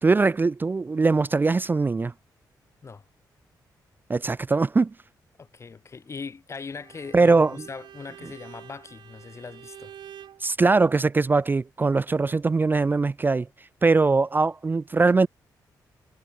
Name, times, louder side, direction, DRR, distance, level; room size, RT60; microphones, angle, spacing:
voice 1, 0.0-2.1 4.1-4.9 7.1-7.5 10.4-13.5 13.8-15.3, right 3 dB, 25° right, 0.4 m, -21 dB
voice 2, 5.4-9.9, left 5 dB, 35° left, 0.8 m, -40 dB
Bowed string instrument, 6.7-10.4, right 10 dB, 70° right, 0.7 m, -47 dB
cardioid pair, 70°, 8 cm